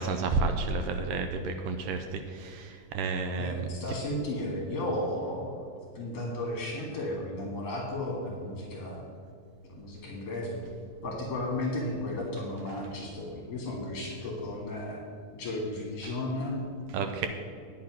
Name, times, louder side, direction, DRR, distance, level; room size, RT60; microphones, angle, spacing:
voice 1, 0.0-3.7 16.9-17.3, right 4 dB, 80° right, 6 dB, 2.0 m, -31 dB
voice 2, 3.3-5.7 5.9-9.0 9.6-10.6 11.0-15.0 15.3-16.6, left 1 dB, 50° left, -2 dB, 2.5 m, -34 dB
10.5 x 8.6 x 6.0 m, 2.3 s
omnidirectional pair, 4.3 m